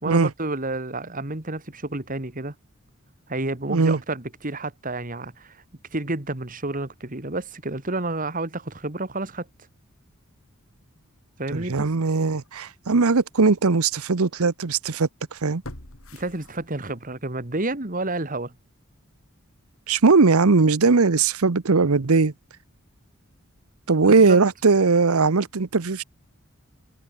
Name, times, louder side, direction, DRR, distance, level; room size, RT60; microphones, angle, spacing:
voice 1, 0.0-2.5 3.3-5.6 5.9-9.5 11.4-11.9 16.1-18.5 24.2-24.4, right 2 dB, 40° right, 2.1 m, -30 dB
voice 2, 3.7-4.0 11.5-15.6 19.9-22.3 23.9-26.0, right 4 dB, 80° right, 0.9 m, -19 dB
sound 1, 12.3-12.5 13.1-13.2 15.6-17.1 17.5-17.6, left 1 dB, 70° left, 4.6 m, -43 dB
head